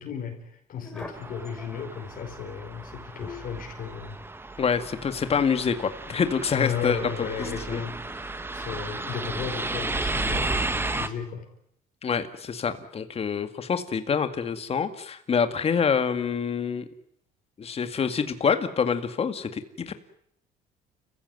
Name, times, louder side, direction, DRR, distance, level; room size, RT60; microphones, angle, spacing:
voice 1, 0.0-4.2 6.5-8.0 8.5-11.5, left 7 dB, 55° left, 3 dB, 5.2 m, -34 dB
sound 1, 0.7-1.3 2.8-3.6 5.4-6.3 7.2-7.9 8.8-9.2 10.4-10.5, left 3 dB, 5° left, 5.3 m, -44 dB
sound 2, 1.1-11.1, right 2 dB, 15° right, 1.4 m, -33 dB
voice 2, 4.6-7.3 7.7-7.8 12.0-16.9 17.6-19.6 19.9-20.0, left 6 dB, 35° left, 9 dB, 2.1 m, -26 dB
29.5 x 15.5 x 9.3 m, 0.72 s
cardioid pair, 110°, 17 cm